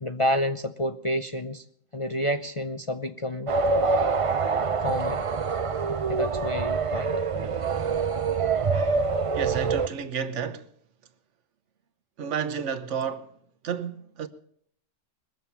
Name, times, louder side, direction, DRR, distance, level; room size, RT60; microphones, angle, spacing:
voice 1, 0.0-1.6 1.9-3.5 4.8-5.2 6.1-7.2, left 1 dB, 35° left, 0.5 m, -29 dB
sound 1, 3.5-9.9, right 4 dB, 40° right, 0.5 m, -25 dB
voice 2, 9.3-10.7 12.2-13.3 13.6-14.3, right 7 dB, 70° right, 1.2 m, -31 dB
21.5 x 7.3 x 7.0 m
omnidirectional pair, 1.3 m